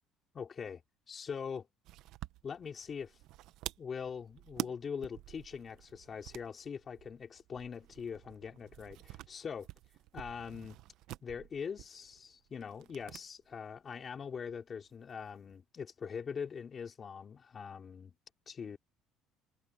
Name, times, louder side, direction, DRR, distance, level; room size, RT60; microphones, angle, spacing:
voice 1, 0.3-0.8 1.1-1.7 2.4-3.2 3.8-9.6 10.1-10.8 11.2-18.1 18.5-18.8, left 6 dB, 35° left, 4.5 m, -42 dB
sound 1, 1.8-13.3 13.5-13.6 14.8-15.6, right 15 dB, 70° right, 1.0 m, -48 dB
cardioid pair, 125°, 0 cm